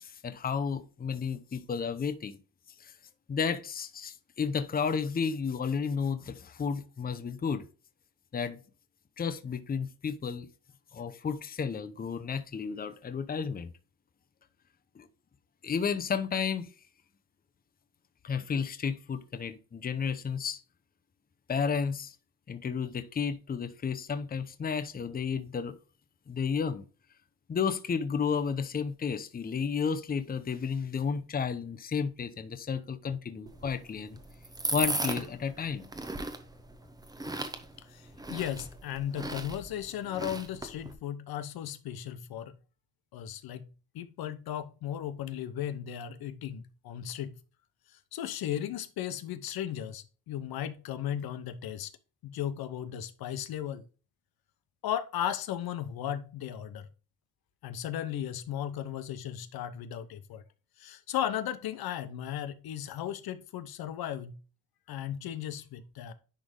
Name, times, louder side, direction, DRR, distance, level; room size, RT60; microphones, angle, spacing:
voice 1, 0.0-2.4 2.8-2.9 3.3-7.6 8.3-8.6 9.2-10.5 10.9-13.7 15.0-15.1 15.6-16.7 18.2-20.6 21.5-22.2 22.5-25.8 26.3-26.8 27.5-34.2 34.7-35.9, left 6 dB, 25° left, 0.7 m, -32 dB
sound 1, 33.5-40.9, right 2 dB, 10° right, 0.8 m, -37 dB
voice 2, 37.8-42.6 43.1-43.7 43.9-47.3 47.9-51.9 52.2-53.8 54.8-56.9 57.6-60.4 60.8-64.4 64.9-66.1, left 10 dB, 80° left, 0.9 m, -36 dB
10.0 x 3.4 x 3.7 m
cardioid pair, 135°, 36 cm